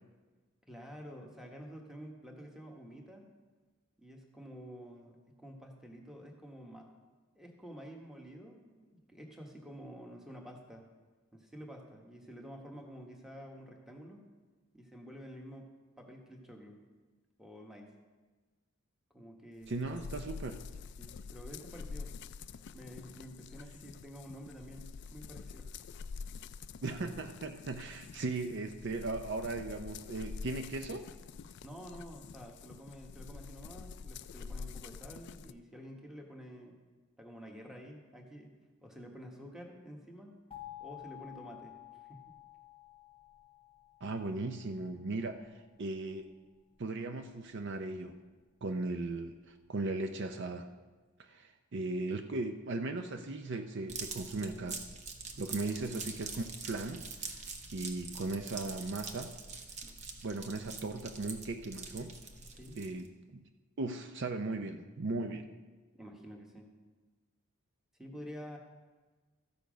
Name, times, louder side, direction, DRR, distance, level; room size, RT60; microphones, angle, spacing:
voice 1, 0.7-3.3 4.0-6.9 7.3-10.9 11.3-14.3 14.7-16.8 17.4-17.9 19.1-20.1 21.0-22.1 22.7-25.7 31.6-36.8 37.2-38.5 38.8-40.4 40.8-41.8 42.0-42.4 55.5-55.7 62.5-62.8 66.0-66.7 68.0-68.6, equal, ahead, 1 dB, 1.2 m, -49 dB
sound 1, 19.6-35.5, left 5 dB, 50° left, 0.3 m, -47 dB
voice 2, 19.7-20.6 26.8-31.1 44.0-45.5 45.8-46.2 46.8-48.2 48.6-50.7 51.2-54.8 55.4-57.5 57.7-59.3 60.2-62.1 62.8-63.4 63.8-65.5, right 2 dB, 55° right, 6 dB, 0.5 m, -37 dB
sound 2, 40.5-45.2, left 15 dB, 25° left, 1.1 m, -52 dB
sound 3, 53.9-63.1, right 4 dB, 30° right, 0.9 m, -45 dB
14.0 x 6.9 x 5.1 m, 1.3 s
head